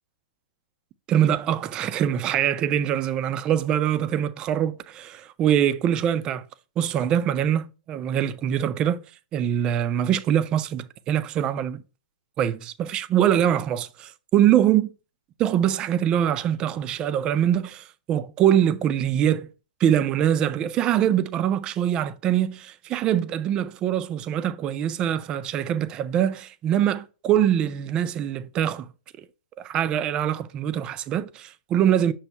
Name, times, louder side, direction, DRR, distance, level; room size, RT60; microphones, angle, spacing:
voice 1, 1.1-6.5 6.8-9.0 9.3-11.8 12.4-14.9 15.4-19.5 19.8-28.9 29.6-32.1, right 10 dB, 20° right, 0.3 m, -23 dB
6.9 x 2.6 x 5.4 m
hypercardioid pair, 160°, 5 cm